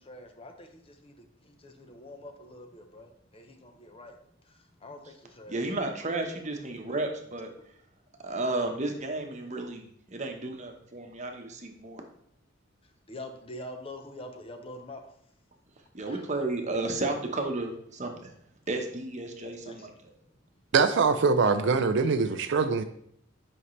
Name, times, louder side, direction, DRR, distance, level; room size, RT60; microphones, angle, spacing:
voice 1, 0.1-0.7 1.0-1.1 1.6-3.1 3.3-4.1 4.8-5.0 5.4-5.6 13.1-15.0 16.1-16.2 18.7-18.8 19.4-19.8, left 1 dB, 30° left, 5 dB, 0.7 m, -44 dB
voice 2, 5.5-7.5 8.2-12.0 15.9-18.3 18.7-19.9, right 2 dB, 35° right, 4 dB, 1.0 m, -33 dB
voice 3, 20.7-22.8, right 4 dB, 60° right, 9 dB, 0.4 m, -23 dB
8.5 x 5.4 x 3.2 m, 0.69 s
head